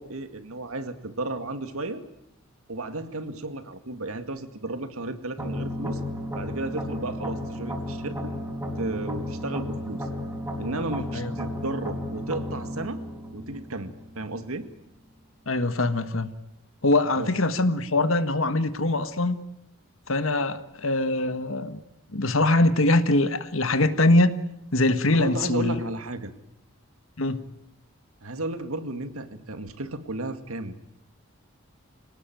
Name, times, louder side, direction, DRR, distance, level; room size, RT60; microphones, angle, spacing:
voice 1, 0.0-2.0 2.7-6.0 6.3-8.3 8.8-10.1 10.6-13.0 13.3-14.7 17.1-17.3 25.1-26.3 28.2-30.8, right 2 dB, 90° right, 9 dB, 2.1 m, -33 dB
sound 1, 5.4-14.4, left 1 dB, 10° right, 4.3 m, -33 dB
voice 2, 15.5-16.3 16.8-19.4 20.1-21.8 22.1-24.3 24.7-25.8 27.2-27.4, left 2 dB, 75° left, 11 dB, 1.6 m, -23 dB
26.5 x 18.5 x 9.2 m, 0.83 s
head